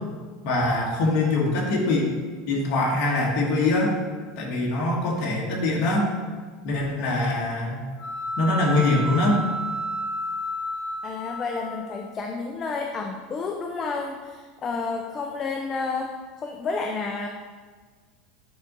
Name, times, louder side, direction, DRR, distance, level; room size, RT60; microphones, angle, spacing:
voice 1, 0.4-2.1 2.5-3.9 4.4-6.1 6.6-7.8 8.4-9.4, left 2 dB, 45° left, -2 dB, 1.2 m, -23 dB
sound 1, 8.0-12.1, equal, 60° left, 1.0 m, -31 dB
voice 2, 11.0-17.3, left 4 dB, 20° left, 2 dB, 0.3 m, -30 dB
7.7 x 3.6 x 3.9 m, 1.5 s
supercardioid pair, 180°, 0 cm